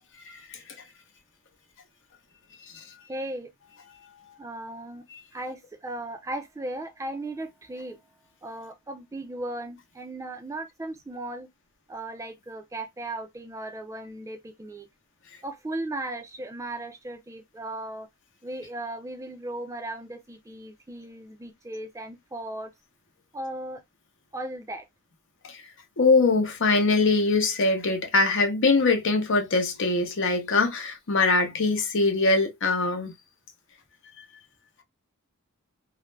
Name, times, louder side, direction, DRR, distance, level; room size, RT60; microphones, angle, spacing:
voice 1, 3.1-3.5 4.4-5.0 5.3-8.0 8.4-11.5 11.9-14.9 15.4-18.1 18.4-22.7 23.3-23.8 24.3-24.9, right 1 dB, 15° right, 0.3 m, -36 dB
voice 2, 26.0-33.1 34.2-34.3, left 3 dB, 55° left, 0.7 m, -22 dB
2.4 x 2.0 x 3.1 m
head